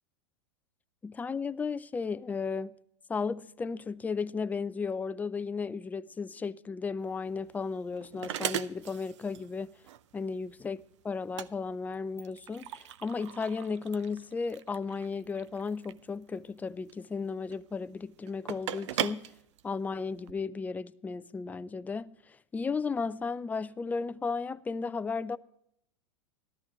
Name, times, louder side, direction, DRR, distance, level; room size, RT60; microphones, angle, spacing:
voice 1, 1.0-2.7 3.1-9.7 10.1-19.3 19.6-25.4, left 4 dB, 10° left, 0.3 m, -34 dB
sound 1, 7.0-20.3, right 11 dB, 70° right, 0.6 m, -40 dB
13.5 x 13.5 x 3.0 m
hypercardioid pair, 110°, 16 cm